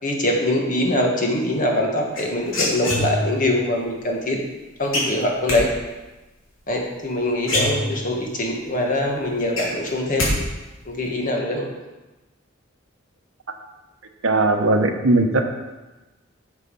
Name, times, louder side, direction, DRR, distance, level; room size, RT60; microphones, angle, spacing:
voice 1, 0.0-4.4 4.8-5.7 6.7-10.3 10.8-11.7, left 1 dB, 40° left, 0 dB, 1.7 m, -23 dB
sound 1, 2.1-3.5 4.9-5.6 7.0-7.1 7.4-8.3 8.7-8.8 9.1-10.3 10.6-11.1, left 1 dB, 80° left, 3.2 m, -24 dB
voice 2, 14.2-15.4, right 2 dB, 80° right, 5 dB, 1.0 m, -18 dB
8.1 x 7.3 x 5.5 m, 1.1 s
head